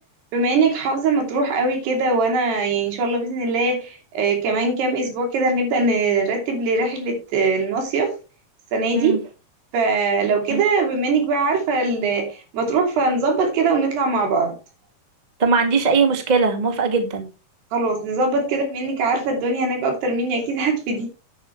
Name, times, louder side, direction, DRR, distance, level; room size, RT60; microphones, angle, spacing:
voice 1, 0.3-8.1 8.7-9.2 9.7-14.5 17.7-21.1, right 3 dB, 85° right, 2 dB, 5.0 m, -21 dB
voice 2, 15.4-17.3, right 4 dB, 40° right, 4 dB, 0.6 m, -20 dB
10.5 x 9.4 x 3.3 m, 0.30 s
omnidirectional pair, 4.6 m